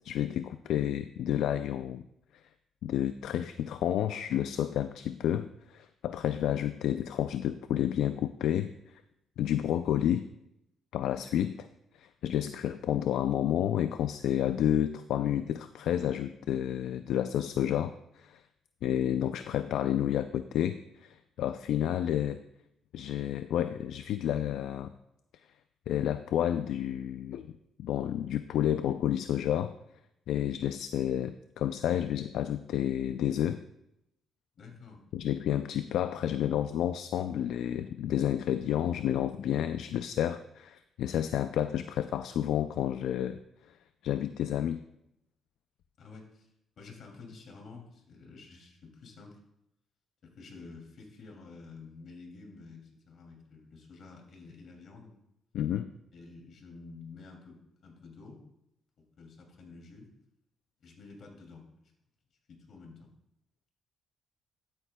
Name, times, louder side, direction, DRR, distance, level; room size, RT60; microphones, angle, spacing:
voice 1, 0.0-2.0 2.8-8.9 9.4-10.3 10.9-11.7 11.9-18.4 18.8-22.4 22.9-24.9 25.9-27.5 27.8-29.7 30.3-33.6 35.1-43.4 44.0-44.8 55.5-55.9, left 10 dB, 80° left, 10 dB, 0.3 m, -30 dB
voice 2, 34.6-35.0 46.0-46.5 46.8-49.4 50.2-55.1 56.1-58.4 59.2-60.1 60.8-61.9 62.5-63.1, left 4 dB, 60° left, 1 dB, 2.6 m, -50 dB
13.0 x 8.8 x 2.2 m, 0.81 s
cardioid pair, 90°, 0 cm